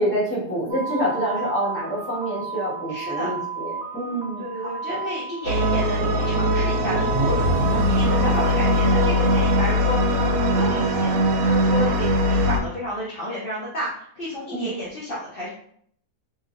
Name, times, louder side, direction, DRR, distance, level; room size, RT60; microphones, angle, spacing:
voice 1, 0.0-5.0 14.5-14.7, equal, 10° left, -9 dB, 1.1 m, -27 dB
sound 1, 0.7-10.8, right 5 dB, 70° right, 1.0 m, -33 dB
voice 2, 2.9-3.3 4.0-15.5, left 1 dB, 60° left, -7 dB, 0.6 m, -31 dB
sound 2, 5.4-12.6, equal, 90° right, 1.2 m, -20 dB
2.9 x 2.8 x 2.5 m, 0.66 s
omnidirectional pair, 1.7 m